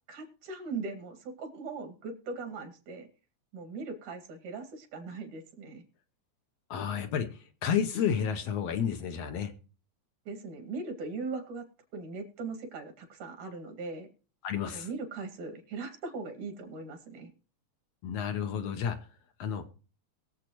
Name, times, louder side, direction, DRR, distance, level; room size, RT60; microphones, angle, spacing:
voice 1, 0.1-3.1 3.5-5.8 10.3-11.6 11.9-14.1 14.7-17.3, right 4 dB, 85° right, 6 dB, 3.4 m, -39 dB
voice 2, 6.7-9.5 14.4-14.9 18.0-19.0 19.4-19.6, left 8 dB, 70° left, 7 dB, 1.9 m, -31 dB
21.5 x 7.5 x 3.0 m, 0.37 s
omnidirectional pair, 3.4 m